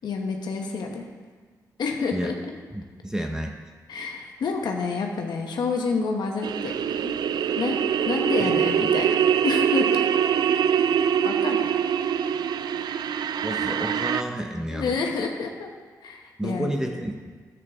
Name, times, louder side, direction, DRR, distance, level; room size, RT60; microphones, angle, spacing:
voice 1, 0.0-1.0 1.8-2.5 3.9-7.1 7.6-7.8 8.0-9.2 9.4-10.2 11.2-11.6 14.7-15.7 16.0-16.8, left 4 dB, 80° left, 2 dB, 1.1 m, -28 dB
voice 2, 2.7-3.6 8.4-8.6 13.4-15.0 16.4-17.1, right 1 dB, 10° right, 2 dB, 0.9 m, -30 dB
sound 1, 6.4-14.2, right 8 dB, 75° right, 0.4 m, -24 dB
10.5 x 8.5 x 3.6 m, 1.5 s
cardioid pair, 75°, 7 cm